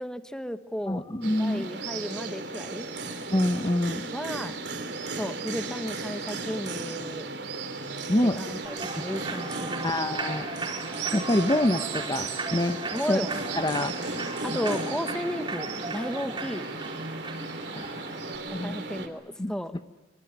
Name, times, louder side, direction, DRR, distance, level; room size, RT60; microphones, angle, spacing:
voice 1, 0.0-1.0 1.4-2.9 4.1-4.5 5.2-7.3 8.2-10.1 12.9-13.3 14.4-16.7 18.6-19.7, equal, 5° left, 10 dB, 1.2 m, -34 dB
voice 2, 0.9-1.7 3.3-4.0 8.1-8.4 9.0-9.1 9.8-12.8 13.1-13.2 13.5-14.4 17.7-18.1 18.5-18.8 19.4-19.5, left 1 dB, 25° left, 9 dB, 0.9 m, -27 dB
sound 1, 1.2-19.1, right 3 dB, 70° right, 3.6 m, -35 dB
Human voice / Clapping / Cheering, 8.6-18.4, right 3 dB, 25° right, 4.9 m, -36 dB
26.5 x 25.0 x 9.0 m, 1.2 s
head